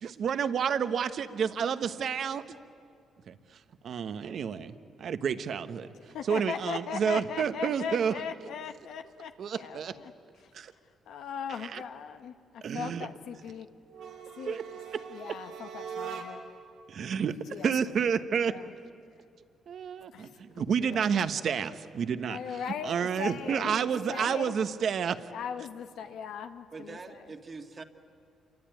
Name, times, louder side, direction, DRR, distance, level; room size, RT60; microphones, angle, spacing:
voice 1, 0.0-2.6 3.3-8.2 9.4-10.0 10.5-10.7 11.6-11.8 12.6-13.1 14.5-14.6 14.9-15.0 16.9-18.6 19.7-25.2, right 7 dB, 60° right, 11 dB, 1.2 m, -30 dB
voice 2, 6.1-10.1 10.4-10.5 11.1-13.7 14.4-14.6 15.1-16.5 17.5-18.2 18.4-18.7 20.1-20.6 20.9-21.1 22.3-24.6 25.3-27.0, left 7 dB, 80° left, 7 dB, 1.1 m, -39 dB
sound 1, 13.9-16.6, right 6 dB, 85° right, 3.3 m, -41 dB
voice 3, 23.6-24.4 26.7-27.8, right 4 dB, 35° right, 6 dB, 1.9 m, -44 dB
27.5 x 24.0 x 9.2 m, 2.4 s
cardioid pair, 90°, 0 cm